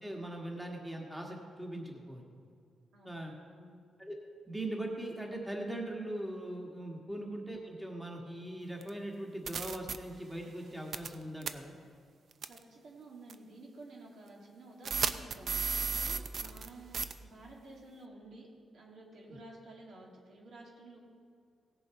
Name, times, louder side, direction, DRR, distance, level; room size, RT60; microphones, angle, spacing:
voice 1, 0.0-2.2 3.0-3.3 4.0-4.1 4.5-11.7 16.4-16.5, right 1 dB, 5° right, 0 dB, 1.5 m, -40 dB
voice 2, 2.9-3.8 7.1-7.2 12.5-21.0, right 2 dB, 75° right, -2 dB, 2.5 m, -52 dB
sound 1, 8.8-8.9 9.5-10.0 10.9-11.1 11.4-11.5 12.4-12.6 13.3-13.4 14.8-16.7 16.9-17.1, right 5 dB, 55° right, 0.5 m, -33 dB
17.0 x 7.0 x 4.7 m, 2.3 s
cardioid pair, 105°, 0 cm